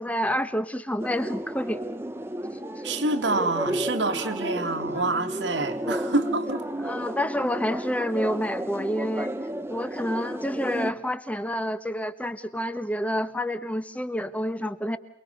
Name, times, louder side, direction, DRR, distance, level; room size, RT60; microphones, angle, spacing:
voice 1, 0.0-1.8 6.8-9.3 9.7-15.0, equal, 10° left, 1.3 m, -28 dB
sound 1, 1.0-10.9, right 1 dB, 15° right, 1.0 m, -32 dB
voice 2, 2.8-6.6, right 2 dB, 90° right, 2.5 m, -27 dB
28.0 x 21.5 x 6.7 m
head